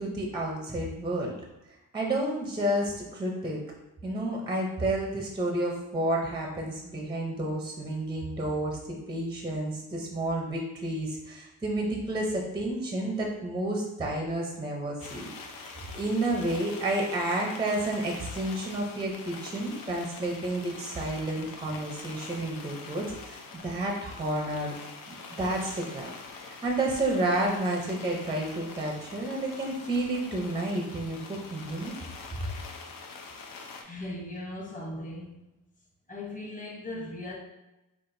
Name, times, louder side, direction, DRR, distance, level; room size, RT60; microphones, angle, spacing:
voice 1, 0.0-1.3 1.9-3.6 4.0-24.7 25.1-31.9, right 1 dB, 15° right, 0 dB, 0.5 m, -31 dB
sound 1, 15.0-33.8, left 4 dB, 70° left, 0.7 m, -45 dB
voice 2, 33.8-35.5 36.1-37.3, left 1 dB, 20° left, -2 dB, 0.9 m, -38 dB
5.7 x 2.4 x 2.6 m, 0.98 s
cardioid pair, 135°, 36 cm